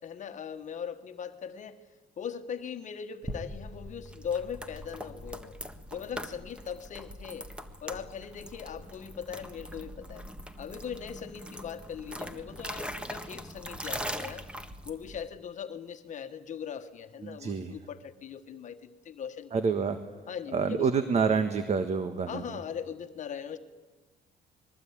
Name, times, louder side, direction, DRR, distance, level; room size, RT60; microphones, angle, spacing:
voice 1, 0.0-1.8 2.2-5.6 5.9-7.5 7.8-10.3 10.6-14.5 14.8-19.6 20.3-21.0 22.3-23.6, left 7 dB, 45° left, 7 dB, 1.4 m, -39 dB
sound 1, 3.2-15.3, equal, 5° right, 1.5 m, -41 dB
voice 2, 17.2-17.7 19.5-20.0 20.5-22.4, right 5 dB, 40° right, 9 dB, 1.5 m, -27 dB
26.0 x 21.5 x 8.9 m, 1.3 s
cardioid pair, 110°, 17 cm